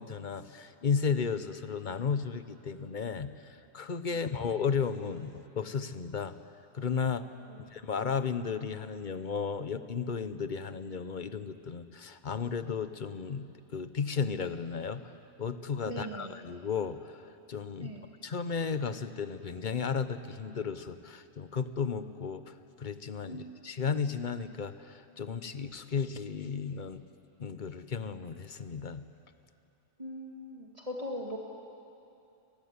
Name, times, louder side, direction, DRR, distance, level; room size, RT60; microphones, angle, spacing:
voice 1, 0.0-6.4 6.7-7.3 7.7-15.1 15.4-17.2 17.5-17.9 18.2-27.0 27.4-29.0, left 6 dB, 45° left, 11 dB, 1.1 m, -34 dB
voice 2, 15.9-16.4 17.8-18.0 23.3-23.8 30.0-31.4, equal, 30° right, -2 dB, 2.2 m, -41 dB
27.5 x 19.5 x 9.7 m, 2.7 s
omnidirectional pair, 1.2 m